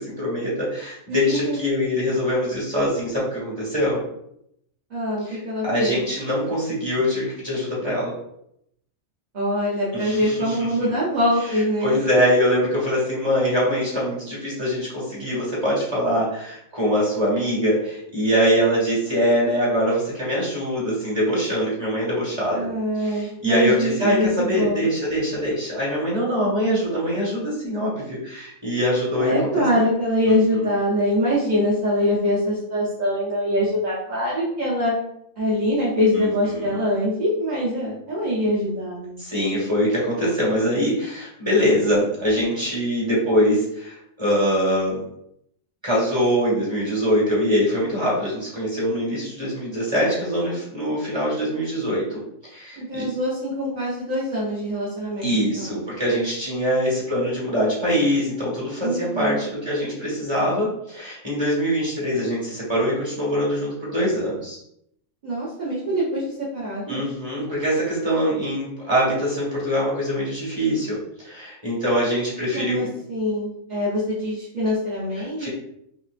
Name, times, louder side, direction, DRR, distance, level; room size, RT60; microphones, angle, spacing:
voice 1, 0.0-4.0 5.3-5.4 5.6-8.1 10.0-10.3 10.8-10.9 11.8-22.7 23.4-29.6 30.3-30.4 36.1-36.3 36.5-36.7 39.2-45.0 45.8-53.0 55.2-64.6 66.9-72.9 75.4-75.5, equal, 20° right, -7 dB, 1.5 m, -23 dB
voice 2, 1.1-1.6 4.9-6.0 9.3-12.0 22.5-24.9 29.1-34.9 35.4-39.2 52.8-55.8 58.8-59.4 65.2-67.0 72.5-75.5, equal, 40° right, -8 dB, 0.9 m, -24 dB
5.3 x 2.1 x 2.5 m, 0.75 s
omnidirectional pair, 1.4 m